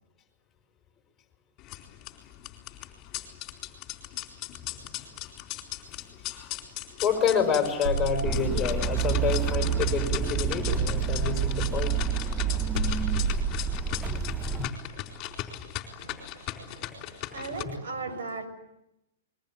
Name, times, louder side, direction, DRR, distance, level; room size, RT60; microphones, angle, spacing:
sound 1, 1.6-17.6, left 13 dB, 30° left, 4.1 m, -38 dB
voice 1, 7.0-12.0 14.1-14.2 14.5-14.7 17.6-17.7, left 7 dB, 15° left, 5.6 m, -28 dB
sound 2, 7.8-10.2 10.7-15.4, right 5 dB, 45° right, 5.2 m, -32 dB
sound 3, 8.2-14.7, right 8 dB, 10° right, 1.0 m, -28 dB
voice 2, 16.0-18.5, right 3 dB, 70° right, 6.7 m, -38 dB
29.5 x 22.0 x 8.9 m
hypercardioid pair, 150°, 0 cm